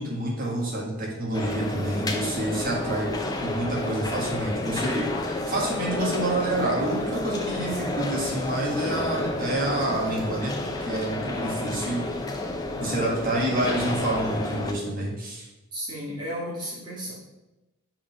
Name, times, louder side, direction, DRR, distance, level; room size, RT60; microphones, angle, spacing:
voice 1, 0.0-3.1 3.4-12.0 12.8-15.4, right 1 dB, 40° right, -3 dB, 1.5 m, -28 dB
sound 1, 1.3-14.7, left 2 dB, 20° left, 0.5 m, -30 dB
voice 2, 15.7-17.1, equal, 20° right, -7 dB, 2.1 m, -33 dB
4.9 x 3.9 x 5.1 m, 1.0 s
head